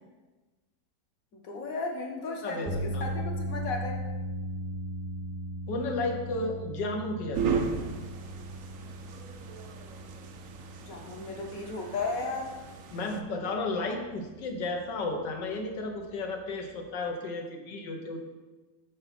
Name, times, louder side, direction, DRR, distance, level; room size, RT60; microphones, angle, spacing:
voice 1, 1.3-3.9 10.8-12.5, left 3 dB, 55° left, 2 dB, 1.5 m, -35 dB
voice 2, 2.4-3.1 5.7-7.7 12.9-18.3, left 2 dB, 75° left, 4 dB, 1.6 m, -33 dB
sound 1, 2.6-16.9, equal, 10° right, 0.6 m, -39 dB
sound 2, 7.3-13.2, right 5 dB, 65° right, 0.8 m, -36 dB
7.1 x 6.8 x 4.1 m, 1.2 s
omnidirectional pair, 2.0 m